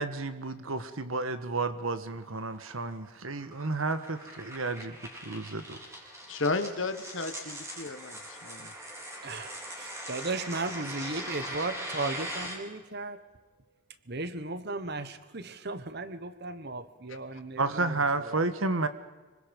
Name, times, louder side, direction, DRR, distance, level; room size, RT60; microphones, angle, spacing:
voice 1, 0.0-5.8 17.6-18.9, right 3 dB, 75° right, 1.4 m, -31 dB
sound 1, 1.8-12.6, equal, 15° right, 4.1 m, -41 dB
voice 2, 6.3-8.7, left 3 dB, 60° left, 1.3 m, -33 dB
voice 3, 9.2-13.2 14.1-18.4, right 3 dB, 50° right, 1.3 m, -36 dB
26.0 x 24.0 x 5.3 m
head